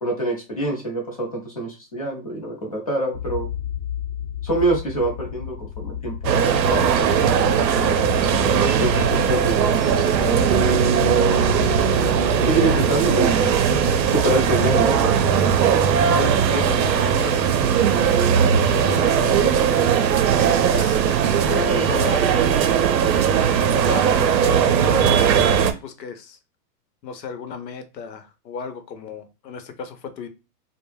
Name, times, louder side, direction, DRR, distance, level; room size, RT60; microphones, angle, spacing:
voice 1, 0.0-3.5 4.4-7.5 8.8-9.7 10.1-10.8 12.4-13.6 13.8-15.1, right 2 dB, 25° left, 0.3 m, -25 dB
sound 1, 3.1-16.3, left 11 dB, 60° left, 0.9 m, -32 dB
sound 2, 6.2-25.7, right 8 dB, 90° right, 0.6 m, -19 dB
Bass guitar, 10.5-14.6, right 6 dB, 45° right, 0.5 m, -29 dB
voice 2, 16.2-18.3 18.6-19.7 20.6-21.0 21.4-22.7 23.6-26.4 27.0-30.3, left 6 dB, 85° left, 0.7 m, -33 dB
2.2 x 2.0 x 3.1 m
hypercardioid pair, 135°, 49 cm